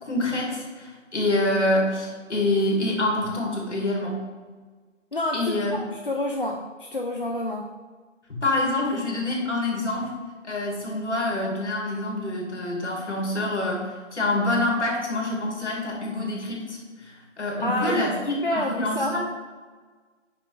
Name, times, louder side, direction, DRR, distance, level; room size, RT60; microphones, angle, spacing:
voice 1, 0.0-4.2 5.3-5.8 8.3-10.1 10.4-19.2, left 1 dB, 60° left, -1 dB, 2.2 m, -26 dB
voice 2, 5.1-7.7 17.6-19.2, left 1 dB, 45° left, 1 dB, 0.4 m, -28 dB
8.2 x 5.1 x 3.5 m, 1.4 s
figure-of-eight pair, 160°, 38 cm